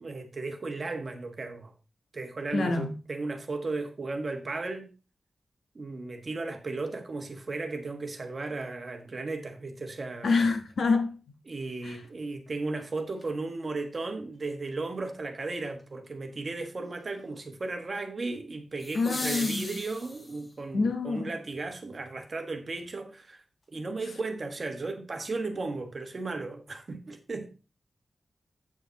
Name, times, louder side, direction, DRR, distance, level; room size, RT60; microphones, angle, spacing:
voice 1, 0.0-1.7 2.1-4.9 5.7-10.4 11.5-23.4 23.7-27.5, right 3 dB, 35° right, 1.4 m, -35 dB
voice 2, 2.5-2.9 10.2-11.2 11.8-12.0 18.9-19.6 20.7-21.3, left 4 dB, 65° left, 1.3 m, -26 dB
sound 1, 13.2-13.3 18.8-20.6 22.8-22.9, left 1 dB, 20° left, 1.1 m, -38 dB
8.4 x 7.1 x 4.1 m
wide cardioid pair, 175°, 0 cm